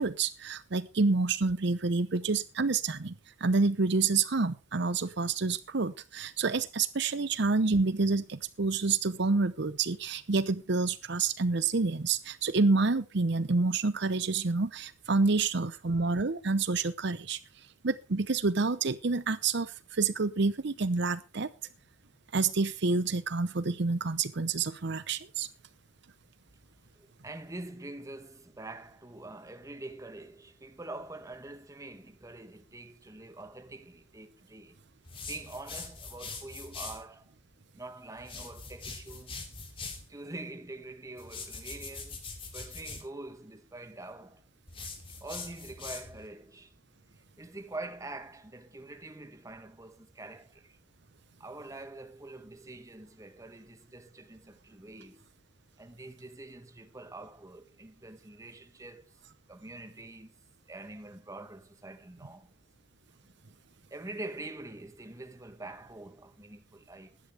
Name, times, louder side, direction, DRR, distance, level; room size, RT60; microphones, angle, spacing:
voice 1, 0.0-3.2 3.4-17.4 17.8-21.5 22.3-25.5, right 4 dB, 60° right, 0.8 m, -28 dB
voice 2, 27.0-34.8 35.3-37.3 37.7-39.4 40.1-42.2 42.5-44.4 45.2-46.7 47.4-50.8 51.4-55.3 55.8-59.1 59.5-60.3 60.7-62.5 63.9-67.2, right 2 dB, 15° right, 1.1 m, -45 dB
sound 1, 35.1-37.0 38.2-40.1 41.2-43.1 44.7-46.3, left 4 dB, 25° left, 2.7 m, -43 dB
16.0 x 11.5 x 3.4 m
head